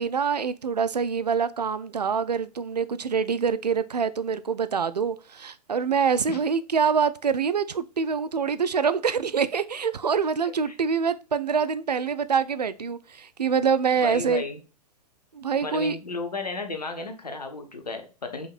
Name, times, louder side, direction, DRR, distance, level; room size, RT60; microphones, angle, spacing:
voice 1, 0.0-14.4 15.3-16.0, right 6 dB, 80° right, 0.4 m, -25 dB
voice 2, 14.0-14.6 15.6-18.5, left 3 dB, 80° left, 1.1 m, -33 dB
5.2 x 3.9 x 2.4 m
figure-of-eight pair, 105°, 20 cm